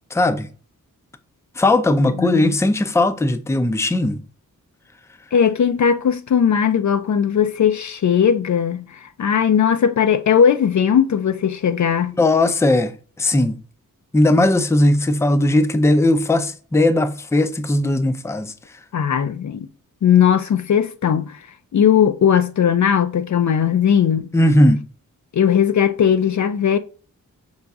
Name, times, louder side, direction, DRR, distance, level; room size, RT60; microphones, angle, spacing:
voice 1, 0.1-0.5 1.6-4.2 12.2-13.6 14.1-18.5 24.3-24.8, left 1 dB, 10° left, 0.5 m, -18 dB
voice 2, 2.2-2.5 5.3-12.1 18.9-19.7 20.0-21.4 21.7-24.3 25.3-26.8, left 8 dB, 60° left, 0.5 m, -18 dB
5.5 x 3.8 x 2.3 m
cardioid pair, 55°, 34 cm